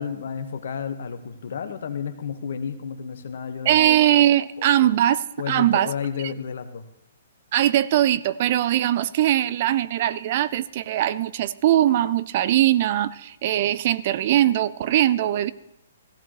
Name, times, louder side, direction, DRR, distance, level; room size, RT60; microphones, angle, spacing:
voice 1, 0.0-4.0 4.8-4.9 5.4-6.8, left 7 dB, 60° left, 8 dB, 1.2 m, -31 dB
voice 2, 3.7-5.9 7.5-15.5, right 12 dB, 45° right, 17 dB, 0.4 m, -21 dB
17.0 x 14.5 x 3.1 m, 0.82 s
figure-of-eight pair, 120°, 0 cm